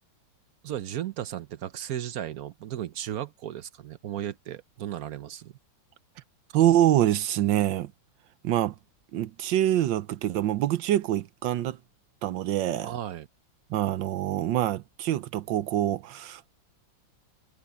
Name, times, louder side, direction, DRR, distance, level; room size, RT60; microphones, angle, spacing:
voice 1, 0.6-5.5 12.8-13.3, right 11 dB, 60° right, 1.0 m, -35 dB
voice 2, 6.5-7.9 8.4-8.7 9.1-11.8 12.2-12.9 13.7-16.5, right 12 dB, 80° right, 1.4 m, -25 dB
omnidirectional pair, 2.0 m